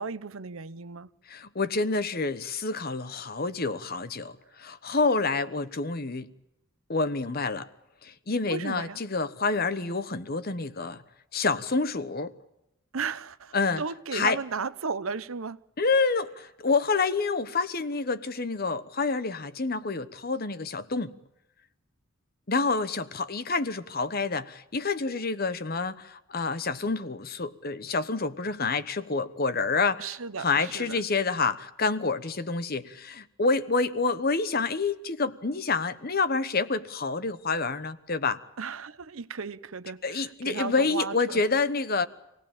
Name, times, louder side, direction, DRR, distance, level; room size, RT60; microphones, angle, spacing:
voice 1, 0.0-1.1 8.5-9.0 12.9-15.6 30.0-31.0 38.6-41.4, right 5 dB, 75° right, 0.9 m, -35 dB
voice 2, 1.3-6.3 6.9-7.7 8.0-11.0 11.3-12.3 13.5-13.8 14.1-14.4 15.8-21.1 22.5-38.4 40.0-42.1, left 4 dB, 45° left, 1.1 m, -28 dB
26.5 x 18.0 x 8.9 m
head